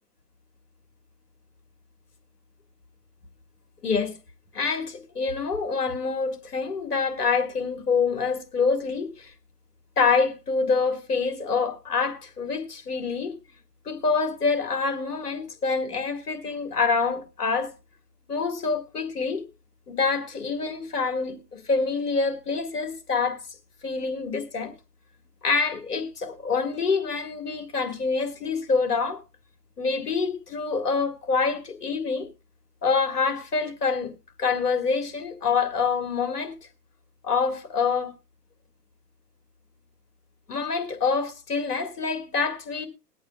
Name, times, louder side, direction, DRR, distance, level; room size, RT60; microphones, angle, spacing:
voice 1, 3.8-4.1 4.5-9.3 10.0-13.3 13.9-17.7 18.3-19.4 19.9-23.4 23.8-24.7 25.4-29.2 29.8-32.3 32.8-34.1 34.4-36.5 37.2-38.1 40.5-42.9, left 4 dB, 70° left, 2.0 m, -26 dB
21.0 x 8.5 x 2.3 m
figure-of-eight pair, 115°, 48 cm